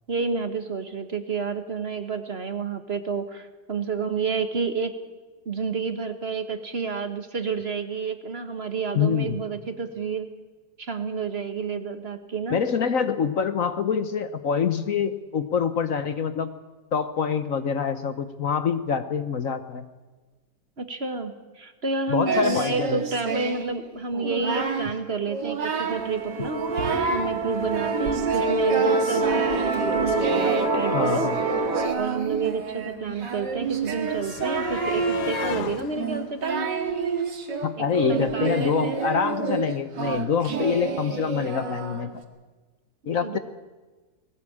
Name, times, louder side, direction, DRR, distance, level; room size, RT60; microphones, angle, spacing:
voice 1, 0.1-4.9 5.4-10.3 10.8-12.6 20.8-26.6 27.1-31.3 32.0-36.7 37.8-39.0 43.2-43.4, right 4 dB, 40° right, 8 dB, 1.4 m, -30 dB
voice 2, 8.9-9.4 12.5-16.5 16.9-19.8 22.1-23.0 30.9-31.4 37.6-42.1 43.1-43.4, left 7 dB, 55° left, 11 dB, 1.2 m, -25 dB
Singing, 22.3-23.8 24.1-24.9 25.3-26.1 26.4-27.3 27.7-42.2, right 5 dB, 85° right, 2.5 m, -29 dB
Musical instrument, 25.9-31.9, right 2 dB, 55° right, 2.7 m, -26 dB
sound 1, 32.0-37.7 38.9-39.0 39.3-39.4, left 9 dB, 70° left, 1.6 m, -38 dB
19.5 x 18.0 x 8.6 m, 1.3 s
omnidirectional pair, 1.8 m